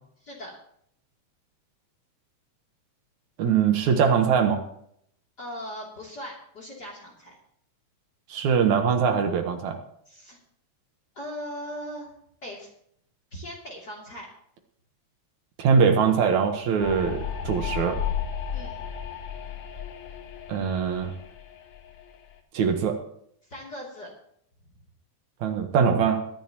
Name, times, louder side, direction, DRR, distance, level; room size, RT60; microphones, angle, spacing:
voice 1, 0.2-0.6 5.4-7.4 10.1-10.4 11.1-12.1 12.4-12.7 13.3-14.3 18.5-18.8 23.5-24.1, equal, 35° left, -2 dB, 3.4 m, -39 dB
voice 2, 3.4-4.6 8.3-9.8 15.6-18.0 20.5-21.1 22.5-23.0 25.4-26.2, right 6 dB, 75° right, 5 dB, 2.6 m, -22 dB
sound 1, 16.8-22.3, left 7 dB, 70° left, 2.7 m, -34 dB
21.5 x 11.0 x 3.0 m, 0.69 s
omnidirectional pair, 3.4 m